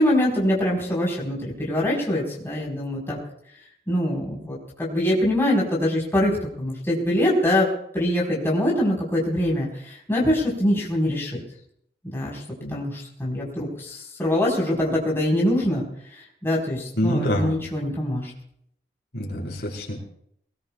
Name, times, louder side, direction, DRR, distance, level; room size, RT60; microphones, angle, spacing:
voice 1, 0.0-3.2 3.9-7.7 7.9-11.4 12.0-12.4 12.7-15.8 16.1-18.3, left 1 dB, 15° left, -5 dB, 4.6 m, -24 dB
voice 2, 16.9-17.5 19.1-20.0, equal, 65° left, -2 dB, 4.6 m, -26 dB
22.5 x 19.5 x 2.4 m, 0.69 s
head